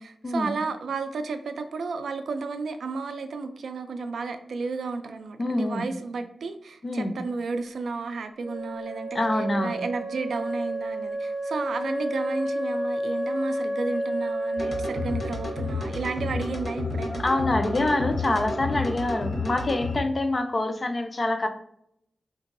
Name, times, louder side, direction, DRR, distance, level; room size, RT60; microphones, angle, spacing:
voice 1, 0.0-17.2, right 4 dB, 85° right, 8 dB, 0.3 m, -32 dB
voice 2, 5.4-5.9 6.8-7.1 9.1-9.8 17.2-21.5, left 2 dB, 30° left, 6 dB, 0.3 m, -26 dB
Wind instrument woodwind instrument, 8.4-16.1, right 1 dB, 45° right, 0.7 m, -31 dB
sound 1, 14.6-20.0, left 3 dB, 55° left, 0.7 m, -31 dB
3.8 x 2.6 x 2.6 m, 0.74 s
wide cardioid pair, 180°, 0 cm